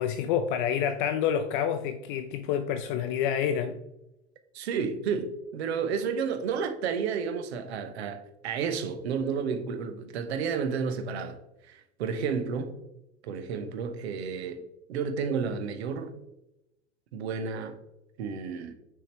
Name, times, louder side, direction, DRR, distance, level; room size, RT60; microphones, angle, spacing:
voice 1, 0.0-3.8, left 8 dB, 50° left, 0.5 m, -28 dB
voice 2, 4.5-11.4 11.7-12.7 13.2-14.6 14.9-16.1 17.1-17.8 18.2-18.7, right 6 dB, 65° right, 0.8 m, -31 dB
6.4 x 3.5 x 4.3 m
figure-of-eight pair, 75°, 34 cm